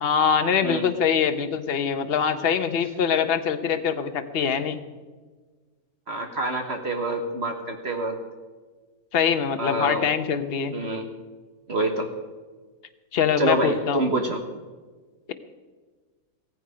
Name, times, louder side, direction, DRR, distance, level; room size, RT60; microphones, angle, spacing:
voice 1, 0.0-4.8 9.1-10.7 13.1-14.0, left 7 dB, 45° left, 9 dB, 1.1 m, -23 dB
voice 2, 6.1-8.2 9.6-10.1 10.7-11.1 11.7-12.1 13.4-14.4, right 2 dB, 45° right, 3 dB, 1.6 m, -26 dB
17.0 x 15.0 x 5.0 m, 1.4 s
omnidirectional pair, 1.6 m